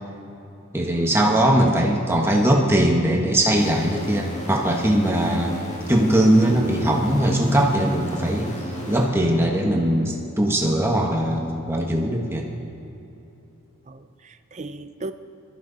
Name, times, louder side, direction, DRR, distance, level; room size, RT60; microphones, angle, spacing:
voice 1, 0.7-5.6 5.9-8.5 8.9-12.4, right 1 dB, 10° right, 0 dB, 1.3 m, -20 dB
sound 1, 3.6-10.0, equal, 30° left, 2.0 m, -35 dB
voice 2, 5.2-5.6 13.9-15.1, right 2 dB, 30° right, 10 dB, 0.5 m, -37 dB
23.0 x 14.0 x 4.0 m, 2.9 s
head